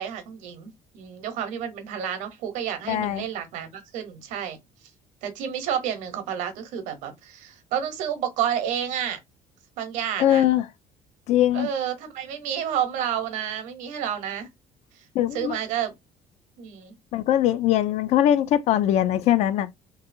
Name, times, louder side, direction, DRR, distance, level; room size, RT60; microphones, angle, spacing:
voice 1, 0.0-4.6 5.2-9.2 9.8-10.4 11.5-14.5 15.3-15.9 16.6-16.9, right 9 dB, 75° right, 0.8 m, -30 dB
voice 2, 2.9-3.3 10.2-10.7 11.3-11.7 15.1-15.6 17.1-19.7, left 11 dB, 55° left, 0.4 m, -21 dB
2.7 x 2.7 x 2.5 m
cardioid pair, 155°, 13 cm